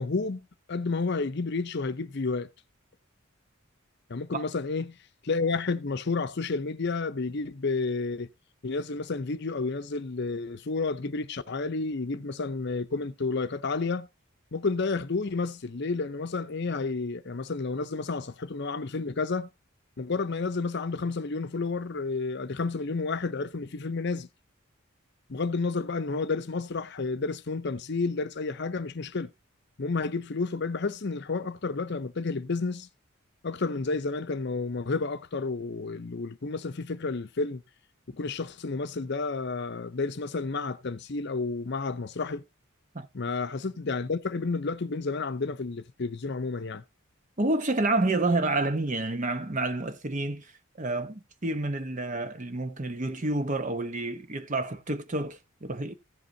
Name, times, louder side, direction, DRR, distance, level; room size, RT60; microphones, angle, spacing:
voice 1, 0.0-2.5 4.1-5.0 5.2-8.3 8.6-14.1 14.5-19.5 20.0-24.3 25.3-29.3 29.8-32.9 33.4-37.6 38.1-42.4 43.1-46.8, left 3 dB, 55° left, 0.7 m, -31 dB
voice 2, 47.4-50.5 50.8-56.0, right 2 dB, 35° right, 0.9 m, -29 dB
15.0 x 8.0 x 2.7 m
head